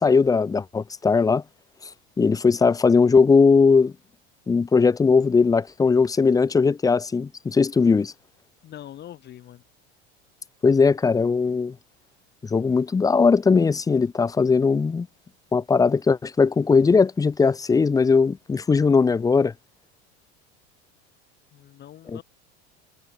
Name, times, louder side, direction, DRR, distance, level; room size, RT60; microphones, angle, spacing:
voice 1, 0.0-1.4 2.2-3.9 4.5-8.1 10.6-11.7 12.4-15.1 15.5-19.5 22.1-22.2, left 4 dB, 10° left, 1.0 m, -19 dB
voice 2, 8.6-9.6 21.5-22.2, left 12 dB, 35° left, 6.9 m, -43 dB
cardioid pair, 155°, 31 cm